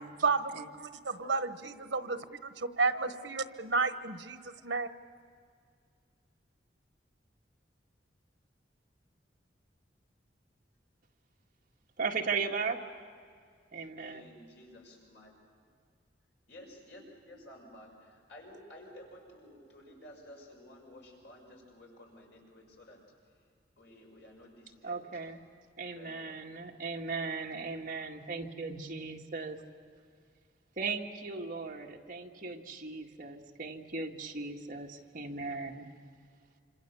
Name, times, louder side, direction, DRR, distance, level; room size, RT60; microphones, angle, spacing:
voice 1, 0.2-4.9, right 4 dB, 85° right, 10 dB, 1.2 m, -32 dB
voice 2, 1.2-2.0 2.9-3.1 14.0-15.3 16.5-23.4 23.8-25.0 25.9-26.5, left 1 dB, 70° left, 0 dB, 6.3 m, -53 dB
voice 3, 12.0-12.8 13.7-14.2 24.8-25.5 25.8-29.6 30.8-35.9, right 4 dB, 50° right, 1 dB, 1.9 m, -37 dB
27.0 x 26.5 x 7.0 m, 2.2 s
head